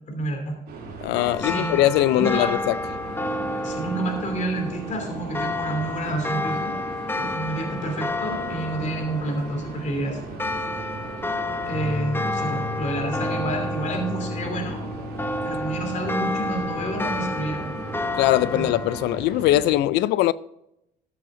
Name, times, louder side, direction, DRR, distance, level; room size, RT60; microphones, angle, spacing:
voice 1, 0.1-0.6 1.4-1.8 2.1-2.5 3.6-6.8 7.1-10.2 11.6-14.8 15.4-17.6 18.4-18.7, right 1 dB, 45° left, 2.8 m, -29 dB
sound 1, 0.7-19.7, right 3 dB, 75° right, 3.4 m, -38 dB
voice 2, 1.0-2.7 18.2-20.3, left 14 dB, 85° left, 0.4 m, -21 dB
sound 2, 1.1-19.2, left 2 dB, 15° left, 0.8 m, -31 dB
sound 3, 11.7-18.3, left 3 dB, 60° left, 4.9 m, -36 dB
13.5 x 7.7 x 3.8 m
cardioid pair, 110°, 17 cm